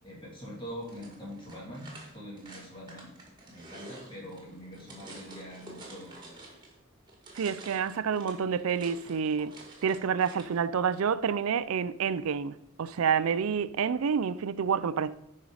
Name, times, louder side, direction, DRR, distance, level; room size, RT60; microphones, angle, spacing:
voice 1, 0.0-3.1 3.5-6.4, equal, 25° left, 2.6 m, -44 dB
sound 1, 0.8-6.8 7.1-10.6, right 2 dB, 20° right, 1.8 m, -49 dB
voice 2, 7.3-9.5 9.8-15.1, right 6 dB, 85° right, 0.4 m, -28 dB
8.7 x 5.4 x 4.9 m
head